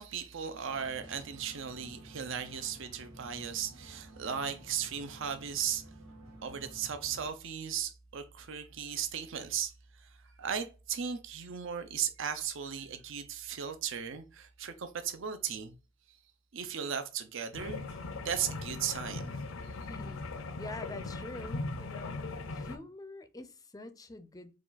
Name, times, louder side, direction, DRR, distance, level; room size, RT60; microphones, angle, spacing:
voice 1, 0.0-5.9 6.4-15.7 16.5-18.0 18.2-19.3, right 8 dB, 65° right, 0.6 m, -36 dB
sound 1, 0.6-7.3, right 1 dB, 90° right, 2.1 m, -52 dB
sound 2, 17.5-22.8, left 3 dB, 85° left, 0.6 m, -39 dB
voice 2, 19.9-20.3 20.6-24.6, left 2 dB, 20° left, 0.5 m, -46 dB
4.7 x 2.4 x 4.0 m
head